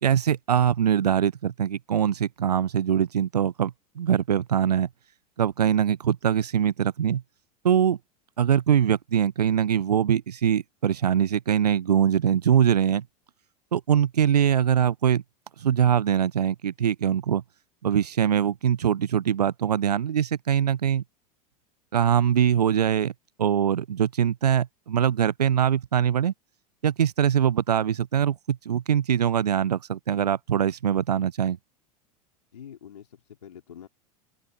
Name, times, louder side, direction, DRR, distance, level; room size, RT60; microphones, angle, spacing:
voice 1, 0.0-4.9 5.4-7.2 7.6-8.0 8.4-13.0 13.7-15.2 15.6-17.4 17.8-21.0 21.9-23.1 23.4-26.3 26.8-31.6, right 9 dB, 80° right, 0.5 m, -23 dB
voice 2, 32.5-33.9, left 9 dB, 75° left, 3.2 m, -45 dB
figure-of-eight pair, 85°, 20 cm